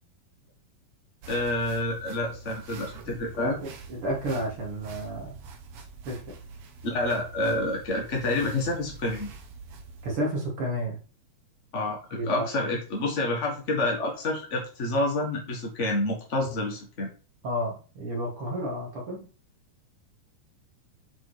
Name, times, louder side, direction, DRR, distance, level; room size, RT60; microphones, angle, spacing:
sound 1, 1.2-10.2, right 4 dB, 70° right, 1.4 m, -45 dB
voice 1, 1.3-3.6 6.8-9.3 11.7-17.1, left 2 dB, 45° left, 0 dB, 0.9 m, -28 dB
voice 2, 3.0-5.4 6.0-6.2 10.0-11.0 12.1-12.5 17.4-19.3, equal, 45° right, -1 dB, 2.8 m, -31 dB
8.2 x 4.5 x 4.2 m, 0.35 s
omnidirectional pair, 3.9 m